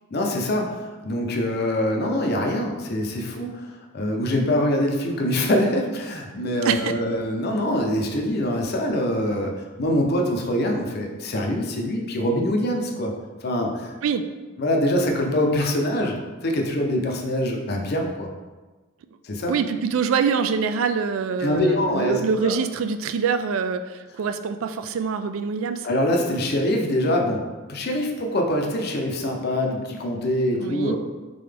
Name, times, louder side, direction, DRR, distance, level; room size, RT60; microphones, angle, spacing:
voice 1, 0.1-9.5 9.8-13.1 13.4-13.9 14.6-18.3 19.2-19.5 21.4-22.5 25.8-27.4 27.7-31.0, left 1 dB, 55° left, 2 dB, 0.6 m, -24 dB
voice 2, 6.6-7.0 14.0-14.3 19.5-25.9 30.6-30.9, right 6 dB, 80° right, 9 dB, 0.3 m, -25 dB
3.8 x 3.7 x 3.4 m, 1.2 s
head